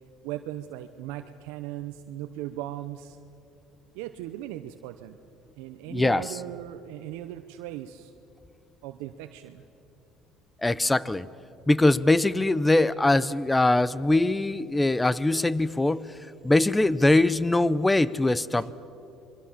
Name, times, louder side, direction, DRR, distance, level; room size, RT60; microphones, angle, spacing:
voice 1, 0.2-3.2 3.9-5.2 5.6-8.1 8.8-9.6 18.6-18.7, right 13 dB, 85° right, 7 dB, 0.8 m, -38 dB
voice 2, 5.9-6.4 10.6-11.3 11.7-16.1 16.4-18.7, left 2 dB, 10° left, 19 dB, 0.7 m, -22 dB
27.5 x 22.5 x 7.4 m, 2.8 s
supercardioid pair, 100°, 0 cm